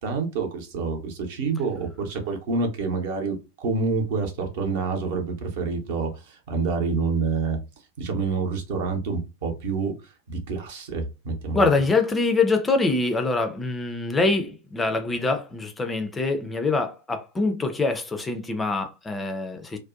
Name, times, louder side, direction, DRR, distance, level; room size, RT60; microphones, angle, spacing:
voice 1, 0.0-7.6 8.0-11.7, right 4 dB, 50° right, 0.7 m, -27 dB
voice 2, 11.5-19.8, left 3 dB, 15° left, 0.4 m, -24 dB
2.5 x 2.1 x 2.4 m
figure-of-eight pair, 90°, 0 cm